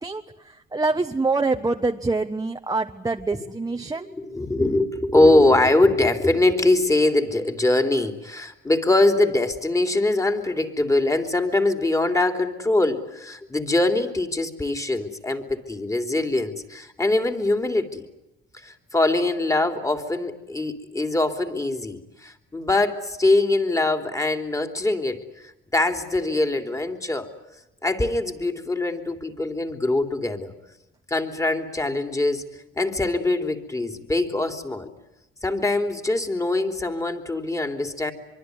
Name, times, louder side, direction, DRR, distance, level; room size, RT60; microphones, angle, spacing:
voice 1, 0.0-4.1, right 3 dB, 20° right, 5 dB, 1.2 m, -25 dB
voice 2, 4.1-18.0 18.5-27.3 27.8-30.5 31.1-32.4 32.7-34.9 35.4-38.1, left 2 dB, 15° left, 7 dB, 3.4 m, -23 dB
24.5 x 24.5 x 9.6 m, 0.92 s
cardioid pair, 90°, 20 cm